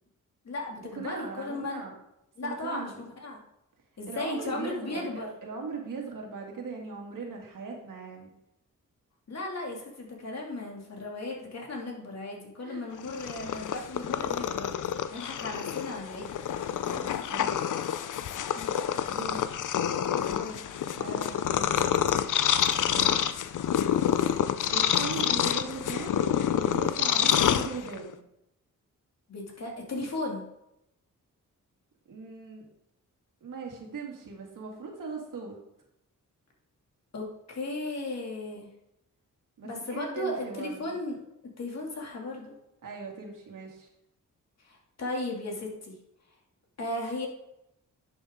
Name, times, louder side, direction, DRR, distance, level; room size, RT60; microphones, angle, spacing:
voice 1, 0.4-1.8 2.4-2.9 3.2-3.4 4.0-5.3 9.3-14.8 15.1-16.3 18.6-18.8 20.3-20.6 20.9-21.2 29.3-30.4 37.1-38.7 39.6-41.2 41.6-42.5 44.6-45.9 46.8-47.3, left 2 dB, 55° left, -1 dB, 2.6 m, -36 dB
voice 2, 1.0-2.0 2.4-3.0 4.1-8.3 12.6-12.9 16.9-17.8 19.1-19.5 21.0-21.9 22.9-23.3 24.6-26.2 26.5-28.2 32.1-32.6 33.4-35.6 39.6-41.0 42.8-43.9, right 4 dB, 75° right, 0 dB, 2.4 m, -39 dB
Purr, 13.0-28.1, left 9 dB, 70° left, 0.6 m, -27 dB
11.0 x 7.0 x 3.7 m, 0.83 s
wide cardioid pair, 115°, 32 cm